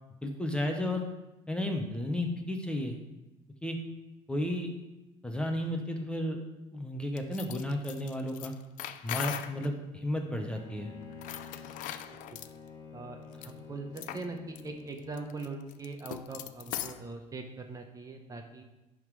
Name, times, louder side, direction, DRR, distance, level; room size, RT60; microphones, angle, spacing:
voice 1, 0.2-1.0 1.5-3.0 3.6-3.8 4.3-4.7 5.2-6.4 6.7-8.5 9.0-10.9, left 1 dB, 5° left, 3 dB, 0.9 m, -33 dB
sound 1, 7.2-9.7 11.1-12.5 13.3-13.5 14.0-14.3 14.6-14.7 15.0-17.0, left 12 dB, 75° left, 0.5 m, -40 dB
Bowed string instrument, 10.5-15.3, left 5 dB, 30° left, 1.9 m, -49 dB
voice 2, 12.9-18.6, right 3 dB, 25° right, 4 dB, 0.9 m, -41 dB
11.0 x 3.7 x 4.7 m, 0.99 s
cardioid pair, 115°, 14 cm